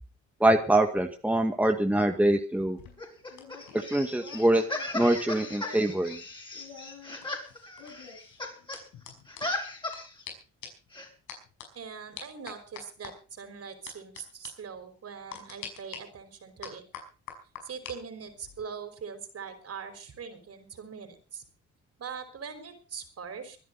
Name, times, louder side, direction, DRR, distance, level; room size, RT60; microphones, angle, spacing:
voice 1, 0.4-2.8 3.7-4.6 4.9-6.2, right 1 dB, 5° right, 5 dB, 1.9 m, -24 dB
sound 1, 2.6-6.0 6.3-10.0 10.3-10.4 10.6-10.9 11.3-11.7 12.2-13.1 13.9-14.2 14.4-14.5 15.3-16.0 16.6-17.9 18.3-18.6, left 7 dB, 90° left, 5.5 m, -45 dB
sound 2, 3.0-8.8 9.1-10.2 10.9-11.1, left 2 dB, 15° left, 6.0 m, -37 dB
voice 2, 11.7-16.8 17.6-21.4 22.0-23.6, right 6 dB, 55° right, 8 dB, 5.3 m, -42 dB
24.0 x 11.0 x 4.2 m, 0.36 s
cardioid pair, 90°, 30 cm